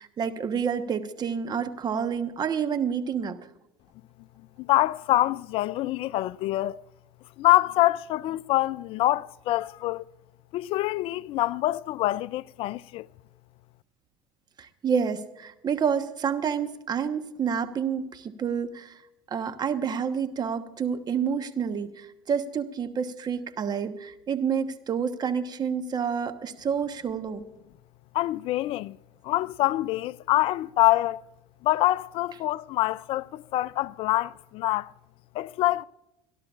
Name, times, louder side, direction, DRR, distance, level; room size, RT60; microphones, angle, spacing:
voice 1, 0.0-3.4 14.6-19.0 19.3-27.4, right 7 dB, 35° right, 1.2 m, -29 dB
voice 2, 4.6-6.8 7.4-10.0 10.5-13.1 28.1-29.0 29.2-31.2 31.6-34.9 35.3-35.8, left 16 dB, 55° left, 0.4 m, -25 dB
27.5 x 11.5 x 2.5 m
hypercardioid pair, 80°, 11 cm